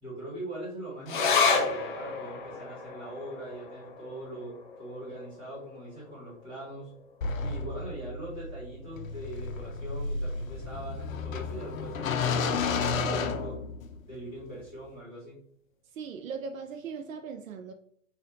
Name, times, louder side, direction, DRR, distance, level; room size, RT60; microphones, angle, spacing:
voice 1, 0.0-6.9 7.4-13.5 14.1-15.4, right 1 dB, 10° right, -7 dB, 1.5 m, -41 dB
sound 1, 1.1-7.8 8.2-8.3 8.6-9.2 9.8-9.9, left 4 dB, 40° left, 0.5 m, -32 dB
sound 2, 7.2-14.1, left 4 dB, 80° left, 0.7 m, -32 dB
voice 2, 15.9-17.7, right 5 dB, 80° right, 6 dB, 0.6 m, -39 dB
4.3 x 2.5 x 3.8 m, 0.65 s
hypercardioid pair, 165°, 40 cm